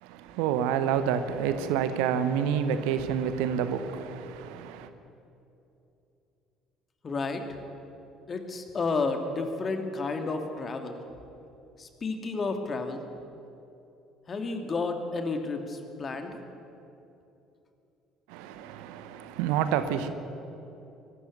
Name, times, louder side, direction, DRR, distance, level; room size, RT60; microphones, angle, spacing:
voice 1, 0.0-4.9 18.3-20.1, right 8 dB, 65° right, 1.1 m, -28 dB
voice 2, 7.0-7.6 8.3-11.0 11.8-13.0 14.3-16.4, left 3 dB, 35° left, 2.5 m, -31 dB
22.5 x 13.0 x 9.3 m
figure-of-eight pair, 55°, 0 cm